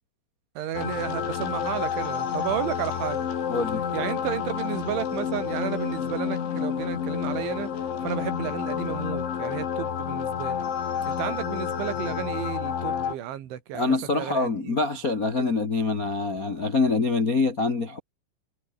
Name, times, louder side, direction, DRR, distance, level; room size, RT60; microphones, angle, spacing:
voice 1, 0.6-3.3 3.9-10.7 11.1-14.8 15.4-15.5, right 11 dB, 85° right, 4.7 m, -33 dB
sound 1, 0.7-13.2, left 8 dB, 80° left, 6.2 m, -29 dB
voice 2, 3.5-3.8 13.7-18.0, left 3 dB, 45° left, 1.1 m, -25 dB
omnidirectional pair, 5.3 m